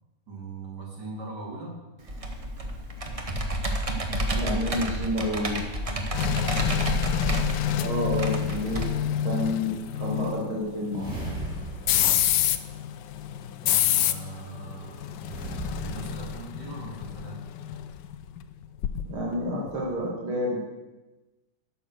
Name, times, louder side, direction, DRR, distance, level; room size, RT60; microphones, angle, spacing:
voice 1, 0.3-1.8 5.6-9.0 11.9-12.3 13.6-15.3 15.6-17.4, right 3 dB, 55° right, -1 dB, 3.1 m, -41 dB
Computer keyboard, 2.1-8.8, right 1 dB, 30° right, 0.7 m, -30 dB
voice 2, 4.3-5.6 7.8-8.8 9.2-9.7 10.0-11.1 19.1-20.6, left 1 dB, 80° right, -5 dB, 2.8 m, -29 dB
sound 1, 6.1-19.3 19.7-19.9, left 11 dB, 70° left, 1.1 m, -28 dB
sound 2, 10.9-13.4 15.2-16.9, right 2 dB, ahead, 3.7 m, -39 dB
12.0 x 6.8 x 6.4 m, 1.1 s
omnidirectional pair, 2.2 m